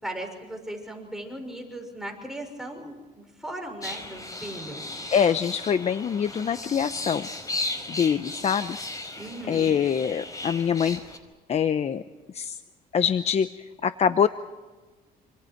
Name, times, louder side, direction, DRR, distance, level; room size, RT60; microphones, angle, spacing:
voice 1, 0.0-4.8 9.2-9.8, right 1 dB, ahead, 2 dB, 6.1 m, -37 dB
sound 1, 3.8-11.2, left 2 dB, 20° left, 4.7 m, -36 dB
voice 2, 5.1-7.3 7.9-9.1 9.5-11.0 11.5-12.0 12.3-12.6 12.9-13.5 13.8-14.3, left 7 dB, 40° left, 11 dB, 0.9 m, -24 dB
27.0 x 27.0 x 4.6 m, 1.3 s
cardioid pair, 110°, 17 cm